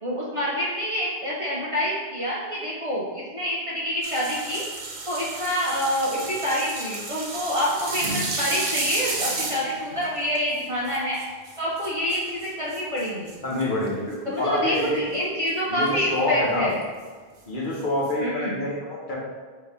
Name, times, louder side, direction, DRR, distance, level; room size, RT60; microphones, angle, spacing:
voice 1, 0.0-4.7 5.1-11.2 11.6-13.3 14.3-16.7 18.2-18.7, equal, 40° right, -6 dB, 0.6 m, -27 dB
sound 1, 4.0-13.9 14.8-14.9 15.3-15.5 15.9-16.0 16.8-16.9 17.8-18.1, right 3 dB, 65° right, 0.9 m, -32 dB
voice 2, 13.4-15.0 15.7-16.7 17.5-19.2, left 1 dB, 55° left, -5 dB, 1.1 m, -26 dB
3.7 x 2.8 x 4.2 m, 1.5 s
omnidirectional pair, 1.0 m